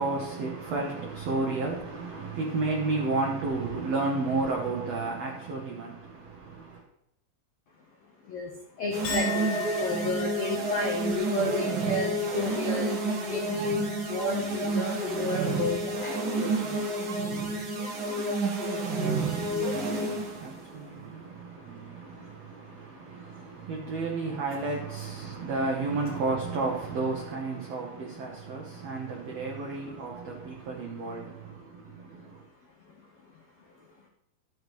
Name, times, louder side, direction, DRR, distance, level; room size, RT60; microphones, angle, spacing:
voice 1, 0.0-6.8 19.0-32.4, right 3 dB, 85° right, 1.4 m, -32 dB
voice 2, 8.2-16.9 20.1-20.4 20.8-22.4 22.7-23.8 25.2-25.4 27.9-29.2 29.7-30.7 32.1-32.4 32.8-33.3 33.6-33.9, left 2 dB, 80° left, 1.4 m, -34 dB
sound 1, 8.9-20.5, right 2 dB, 70° right, 1.2 m, -30 dB
Chink clink, 9.0-15.6 16.0-16.6, right 1 dB, 55° left, 4.0 m, -39 dB
13.0 x 7.2 x 3.1 m
omnidirectional pair, 4.5 m